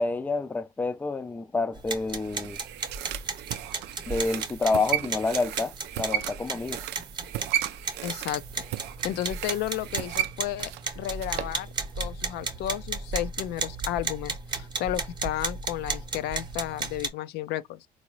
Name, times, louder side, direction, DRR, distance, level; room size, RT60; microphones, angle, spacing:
voice 1, 0.0-2.6 4.1-6.9, left 3 dB, 10° left, 0.3 m, -28 dB
sound 1, 1.7-17.1, right 4 dB, 25° right, 0.8 m, -34 dB
sound 2, 2.2-11.6 11.9-12.0, right 12 dB, 85° right, 0.4 m, -34 dB
voice 2, 8.0-8.4 9.0-11.7 12.0-17.9, left 13 dB, 80° left, 0.4 m, -33 dB
3.9 x 2.6 x 2.9 m
cardioid pair, 110°, 17 cm